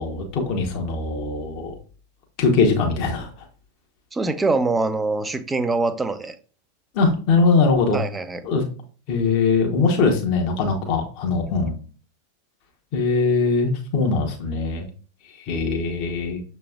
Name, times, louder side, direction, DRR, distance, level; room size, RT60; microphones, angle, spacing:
voice 1, 0.0-1.7 2.4-3.3 6.9-8.0 8.4-8.7 9.1-11.7 12.9-14.9 15.5-16.4, left 4 dB, 40° left, 2 dB, 1.0 m, -21 dB
voice 2, 4.1-6.4 7.9-8.4, right 3 dB, 10° right, 9 dB, 0.5 m, -23 dB
6.7 x 3.1 x 2.4 m, 0.39 s
figure-of-eight pair, 90°, 0 cm